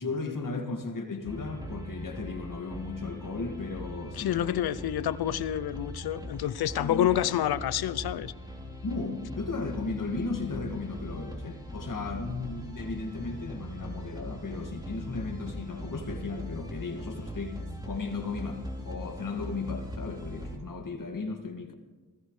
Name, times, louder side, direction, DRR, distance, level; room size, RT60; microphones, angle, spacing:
voice 1, 0.0-4.7 6.8-7.1 8.8-17.6 17.8-21.7, left 4 dB, 55° left, 2.2 m, -35 dB
sound 1, 1.2-20.6, equal, 10° right, 3.5 m, -41 dB
voice 2, 4.2-8.3, left 11 dB, 80° left, 0.7 m, -28 dB
20.5 x 16.5 x 3.3 m
cardioid pair, 45°, 37 cm